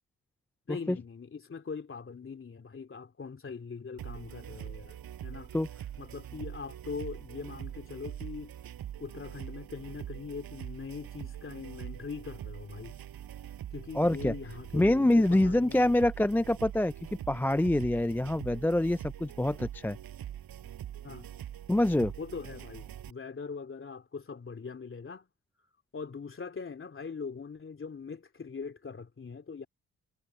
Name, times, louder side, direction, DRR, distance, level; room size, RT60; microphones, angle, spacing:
voice 1, 0.7-5.5 6.0-8.5 9.0-13.0 13.7-16.0 21.0-21.3 22.2-25.3 25.9-29.7, left 5 dB, 35° left, 3.1 m, -41 dB
sound 1, 4.0-23.1, right 10 dB, 80° right, 7.4 m, -43 dB
voice 2, 13.9-14.3 14.7-16.9 17.3-20.0 21.7-22.1, left 1 dB, 5° left, 0.3 m, -25 dB
cardioid pair, 90°, 35 cm